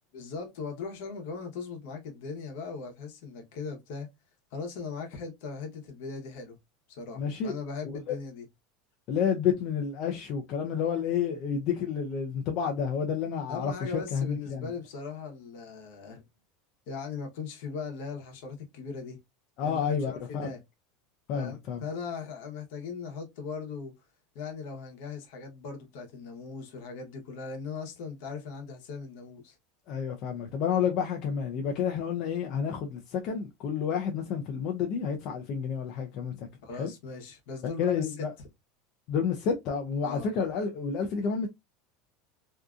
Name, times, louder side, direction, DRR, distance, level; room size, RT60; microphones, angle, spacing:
voice 1, 0.1-4.1 4.5-6.6 6.9-8.5 13.5-16.2 16.9-19.2 19.6-20.6 21.3-23.9 24.3-29.6 36.6-38.5 40.0-40.3, left 5 dB, 60° left, 0.8 m, -39 dB
voice 2, 7.2-7.5 8.1-8.2 9.1-14.7 19.6-20.5 21.3-21.8 29.9-36.5 36.7-36.9 37.8-38.3 39.1-41.5, left 7 dB, 40° left, 0.4 m, -30 dB
2.6 x 2.4 x 2.3 m
supercardioid pair, 175°, 0 cm